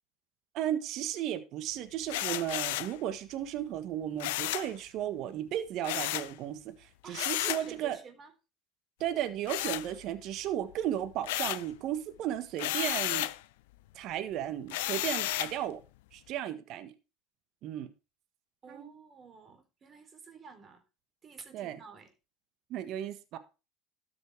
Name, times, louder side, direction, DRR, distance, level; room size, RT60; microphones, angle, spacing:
voice 1, 0.5-8.0 9.0-13.3 13.9-15.8 16.1-16.9 17.6-17.9 18.7-18.9 21.5-21.8 22.7-23.4, right 11 dB, 55° right, 1.5 m, -35 dB
sound 1, 2.1-3.0 4.2-4.7 5.8-6.3 7.1-7.7 9.5-10.3 10.7-11.7 12.6-13.4 14.7-15.6, left 16 dB, 75° left, 0.6 m, -33 dB
voice 2, 7.0-8.3 18.6-20.8 21.2-22.1, right 5 dB, 35° right, 3.6 m, -50 dB
13.0 x 6.2 x 4.7 m
hypercardioid pair, 90°, 0 cm